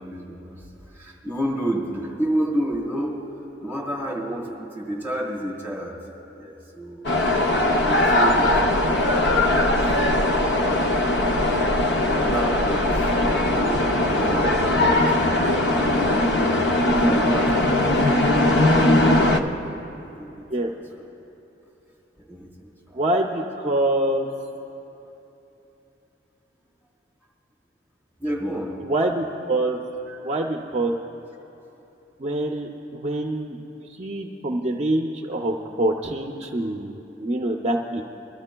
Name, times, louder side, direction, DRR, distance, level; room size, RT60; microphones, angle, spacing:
voice 1, 0.0-7.1 7.5-10.0 10.3-11.4 11.8-16.4 16.9-18.0 18.9-19.6 19.8-20.7 21.0-21.1 22.2-23.0 23.6-23.7 28.2-28.8 30.1-30.2, right 1 dB, 10° left, -4 dB, 3.2 m, -32 dB
sound 1, 7.0-19.4, left 1 dB, 70° left, 0.6 m, -20 dB
voice 2, 22.9-24.3 28.8-29.8 30.2-30.9 32.2-33.6 33.9-38.0, right 1 dB, 35° right, 2 dB, 0.5 m, -25 dB
26.0 x 13.0 x 2.2 m, 3.0 s
head